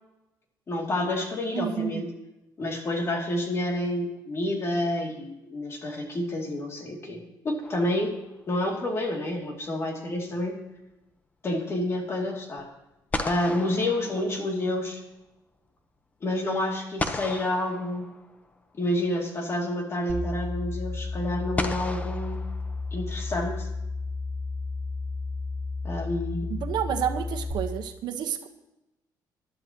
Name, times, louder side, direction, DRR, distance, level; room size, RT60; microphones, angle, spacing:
voice 1, 0.7-2.1 2.6-8.2 8.5-10.6 11.4-12.7 13.2-15.0 16.2-18.1 18.8-22.4 22.9-23.7 25.8-26.5, left 1 dB, 35° left, 1 dB, 2.6 m, -29 dB
voice 2, 1.5-2.1 26.5-28.5, right 9 dB, 70° right, 6 dB, 1.2 m, -30 dB
sound 1, 7.6-8.5 12.6-12.7 13.1-14.8 17.0-18.6 19.9-20.0 21.6-23.2, left 2 dB, 20° left, 1.0 m, -35 dB
sound 2, 20.1-27.5, left 3 dB, 50° right, 1.3 m, -33 dB
21.0 x 12.0 x 3.0 m, 0.97 s
cardioid pair, 130°, 8 cm